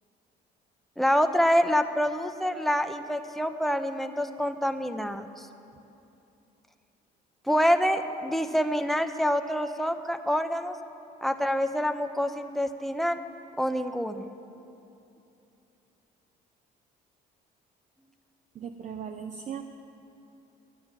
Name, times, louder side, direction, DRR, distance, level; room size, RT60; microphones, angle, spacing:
voice 1, 1.0-5.5 7.5-10.7 11.2-13.2 13.6-14.3, equal, ahead, 7 dB, 0.7 m, -26 dB
voice 2, 18.6-19.6, right 7 dB, 45° right, 6 dB, 0.7 m, -37 dB
13.0 x 9.6 x 8.9 m, 2.8 s
cardioid pair, 110°, 17 cm